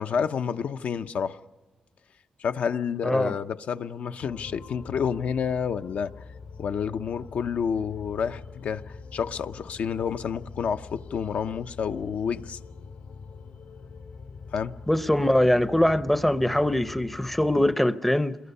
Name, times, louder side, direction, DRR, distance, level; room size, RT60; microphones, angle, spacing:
voice 1, 0.0-1.4 2.4-6.1 6.6-12.6 14.5-14.7, left 7 dB, 65° left, 0.7 m, -29 dB
voice 2, 3.0-3.4 14.9-18.4, left 1 dB, 5° left, 0.6 m, -22 dB
sound 1, 4.2-17.7, left 5 dB, 85° left, 3.5 m, -44 dB
27.5 x 22.0 x 5.5 m
wide cardioid pair, 130°, 3 cm